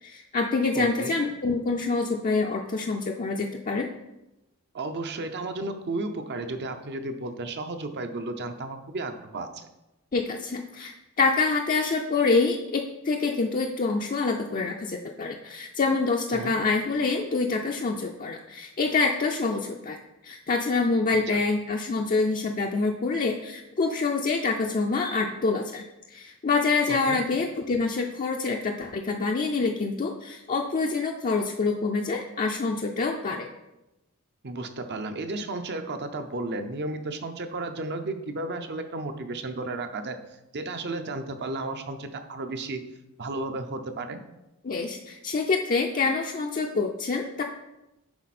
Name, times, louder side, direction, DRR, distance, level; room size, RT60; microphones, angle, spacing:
voice 1, 0.0-3.9 10.1-20.0 20.2-33.5 44.6-47.4, left 4 dB, 40° left, 1 dB, 0.5 m, -26 dB
voice 2, 0.8-1.2 4.7-9.7 16.3-16.5 21.3-21.4 26.9-27.2 34.4-40.2 40.5-42.8 43.2-44.2, right 2 dB, 50° right, 7 dB, 0.7 m, -33 dB
10.5 x 4.1 x 4.2 m, 0.96 s
head